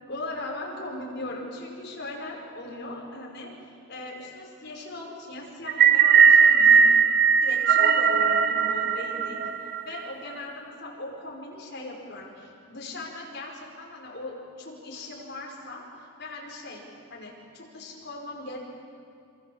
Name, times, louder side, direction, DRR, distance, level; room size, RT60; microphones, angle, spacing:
voice 1, 0.1-3.5 3.9-6.8 7.4-9.4 9.8-15.8 16.2-16.8 17.1-18.6, left 2 dB, 50° left, -2 dB, 5.6 m, -39 dB
sound 1, 5.7-10.0, right 6 dB, 50° right, 1.1 m, -18 dB
27.5 x 25.5 x 7.3 m, 2.3 s
head